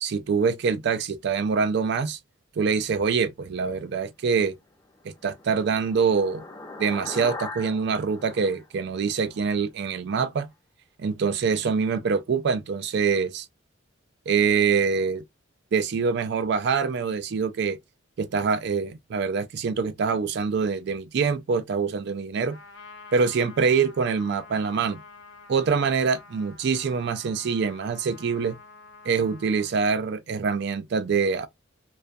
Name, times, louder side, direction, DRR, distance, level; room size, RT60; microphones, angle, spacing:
voice 1, 0.0-2.2 2.6-4.6 5.0-6.4 6.8-10.5 11.0-13.5 14.3-15.2 15.7-17.8 18.2-22.6 23.1-25.0 25.5-28.6 29.1-31.5, right 5 dB, 55° right, 0.4 m, -25 dB
sound 1, 4.7-9.5, left 3 dB, 20° left, 0.6 m, -40 dB
Trumpet, 22.5-29.7, left 4 dB, 65° left, 0.6 m, -48 dB
2.4 x 2.2 x 2.5 m
head